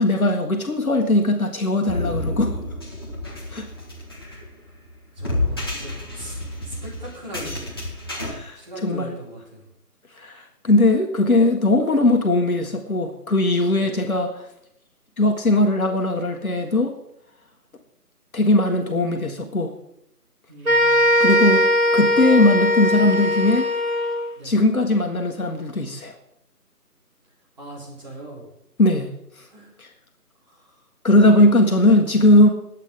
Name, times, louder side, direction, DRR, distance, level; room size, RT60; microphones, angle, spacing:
voice 1, 0.0-2.5 3.5-3.7 8.2-9.2 10.2-14.4 15.2-16.9 18.3-19.7 21.2-21.7 21.9-23.7 24.4-26.1 28.8-29.1 29.8-29.9 31.0-32.5, left 1 dB, 60° left, 3 dB, 1.9 m, -19 dB
sound 1, 1.9-8.3, left 1 dB, 15° left, 1.4 m, -30 dB
voice 2, 5.2-7.8 8.6-9.6 13.8-14.0 20.5-21.2 24.4-24.5 27.6-28.4 29.5-29.7 30.5-30.8, right 1 dB, 25° right, -5 dB, 4.0 m, -39 dB
sound 2, 20.7-24.3, left 1 dB, 60° right, 2.9 m, -19 dB
21.0 x 8.5 x 3.8 m, 0.77 s
figure-of-eight pair, 170°, 47 cm